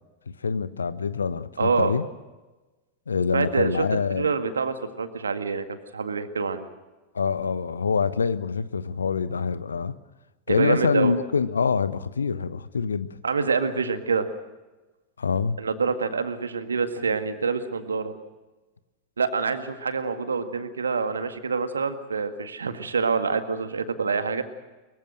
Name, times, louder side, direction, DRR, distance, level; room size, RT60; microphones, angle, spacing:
voice 1, 0.4-2.1 3.1-4.3 7.1-10.0 10.5-13.2 15.2-15.6, left 5 dB, 75° left, 15 dB, 1.1 m, -25 dB
voice 2, 1.6-1.9 3.3-5.7 5.9-6.7 10.5-11.2 13.2-14.3 15.6-18.1 19.2-24.4, right 5 dB, 70° right, 9 dB, 1.9 m, -26 dB
24.0 x 23.0 x 6.5 m, 1.1 s
figure-of-eight pair, 90°, 0 cm